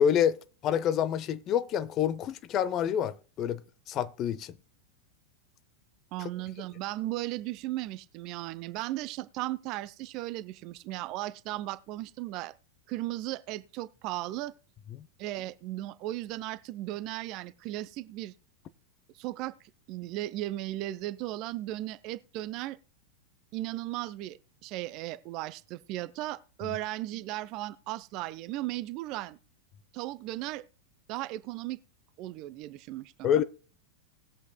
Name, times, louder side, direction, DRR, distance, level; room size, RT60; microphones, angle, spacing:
voice 1, 0.0-3.6 3.9-4.5 6.2-6.3 15.0-15.1 33.2-33.4, left 9 dB, 35° left, 0.6 m, -27 dB
voice 2, 6.1-12.5 12.9-14.5 15.2-18.3 19.1-19.5 19.9-22.8 23.5-29.4 29.9-30.6 31.1-31.8 32.2-33.3, right 16 dB, 40° right, 0.5 m, -36 dB
19.5 x 8.1 x 2.2 m
figure-of-eight pair, 90°, 0 cm